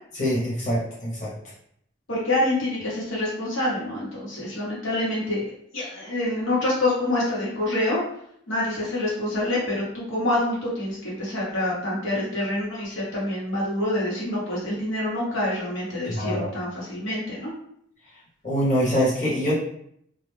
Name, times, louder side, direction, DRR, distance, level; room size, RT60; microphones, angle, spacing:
voice 1, 0.1-1.3 16.0-16.5 18.4-19.5, equal, 40° left, -8 dB, 1.0 m, -24 dB
voice 2, 2.1-5.5 5.7-8.0 8.5-17.5, left 1 dB, 85° left, -6 dB, 1.1 m, -26 dB
2.4 x 2.1 x 3.1 m, 0.69 s
head